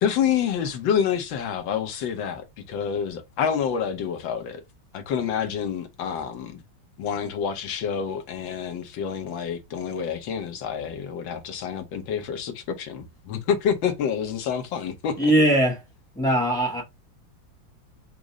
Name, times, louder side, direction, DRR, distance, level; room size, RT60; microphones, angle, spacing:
voice 1, 0.0-4.6 4.9-6.6 7.0-15.3, left 7 dB, 80° left, 1.6 m, -28 dB
voice 2, 15.2-15.8 16.1-16.8, right 1 dB, 5° left, 0.9 m, -20 dB
5.2 x 2.0 x 4.7 m
omnidirectional pair, 2.1 m